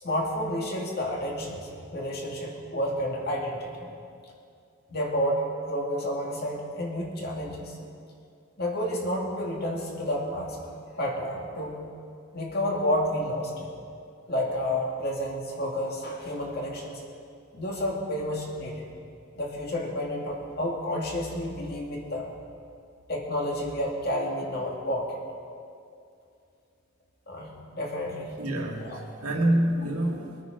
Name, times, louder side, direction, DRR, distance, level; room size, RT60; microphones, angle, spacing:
voice 1, 0.0-3.9 4.9-7.8 8.6-10.6 10.9-11.8 12.3-13.7 14.3-17.0 17.5-18.9 19.3-22.3 23.1-25.2 27.3-28.3 28.8-29.0, equal, 45° left, -2 dB, 2.5 m, -30 dB
voice 2, 28.4-30.4, right 1 dB, 85° right, -1 dB, 2.5 m, -27 dB
23.0 x 9.2 x 5.4 m, 2.4 s
head